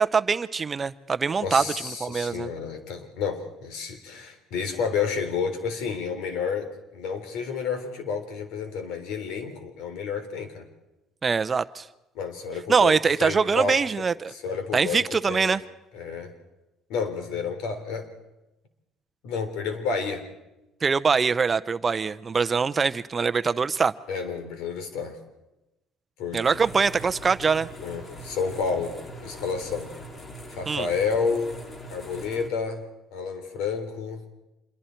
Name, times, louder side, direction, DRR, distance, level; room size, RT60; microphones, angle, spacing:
voice 1, 0.0-2.5 11.2-11.9 12.7-14.3 14.7-15.6 20.8-23.9 26.3-27.7 30.7-30.9, right 5 dB, 25° right, 12 dB, 0.6 m, -23 dB
voice 2, 1.4-10.7 12.1-13.8 14.3-15.5 15.9-16.3 16.9-18.1 19.2-20.3 24.1-25.2 26.2-26.4 27.8-29.9 30.5-31.6 31.9-32.8 33.1-34.2, left 5 dB, 80° left, 8 dB, 3.4 m, -30 dB
sound 1, 26.4-32.5, equal, 30° left, 2.6 m, -42 dB
26.5 x 22.5 x 4.5 m, 0.96 s
cardioid pair, 115°, 0 cm